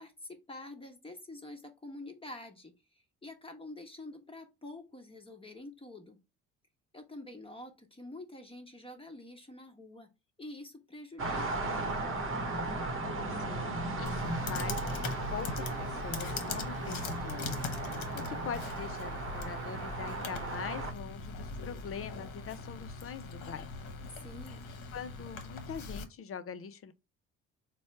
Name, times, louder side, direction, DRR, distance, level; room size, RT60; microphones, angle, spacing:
voice 1, 0.0-6.2 6.9-10.1 10.4-12.4 24.2-24.7, left 2 dB, 15° left, 1.2 m, -47 dB
sound 1, 11.2-20.9, right 2 dB, 30° right, 1.1 m, -36 dB
voice 2, 13.4-14.8 15.3-23.7 24.9-26.9, left 7 dB, 35° left, 0.6 m, -43 dB
Computer keyboard, 14.1-26.0, left 4 dB, 55° left, 1.0 m, -41 dB
4.1 x 2.3 x 4.2 m
hypercardioid pair, 55°, 39 cm